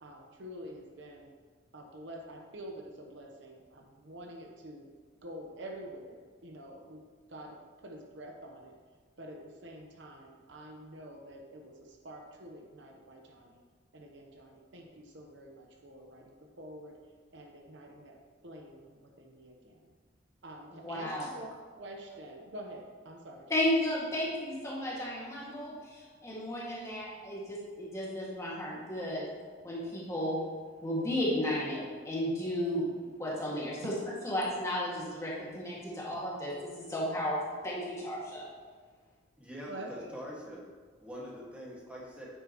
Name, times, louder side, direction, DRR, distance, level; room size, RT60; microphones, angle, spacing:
voice 1, 0.0-1.3 1.7-4.9 5.2-7.0 7.3-8.7 9.2-13.6 13.9-17.0 17.3-19.8 20.4-21.5 21.7-23.5 33.3-33.4 33.9-34.0 39.7-40.1, right 1 dB, 65° right, 1 dB, 1.0 m, -47 dB
voice 2, 20.7-21.3 23.5-29.2 29.6-30.5 30.8-33.9 34.2-38.5, left 1 dB, 15° left, -6 dB, 2.0 m, -34 dB
voice 3, 39.4-40.6 41.0-42.3, equal, 5° right, -5 dB, 1.8 m, -44 dB
9.3 x 7.9 x 3.1 m, 1.6 s
head